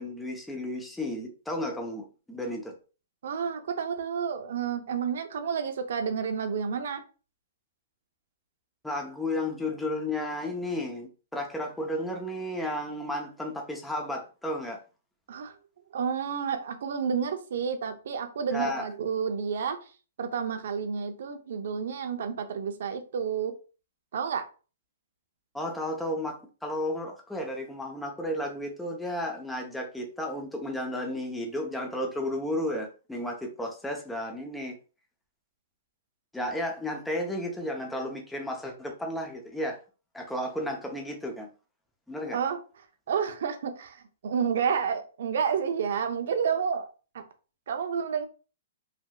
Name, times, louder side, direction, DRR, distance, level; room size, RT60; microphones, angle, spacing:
voice 1, 0.0-2.7 8.8-14.8 18.5-18.9 25.5-34.7 36.3-39.8 40.1-41.5 42.1-42.4, left 1 dB, 5° left, 0.7 m, -33 dB
voice 2, 3.2-7.0 15.3-15.6 15.9-19.9 20.2-23.5 24.1-24.5 42.3-42.6 43.1-46.8 47.1-47.2 47.7-48.3, right 6 dB, 65° right, 0.6 m, -30 dB
3.3 x 2.6 x 2.3 m
hypercardioid pair, 135°, 0 cm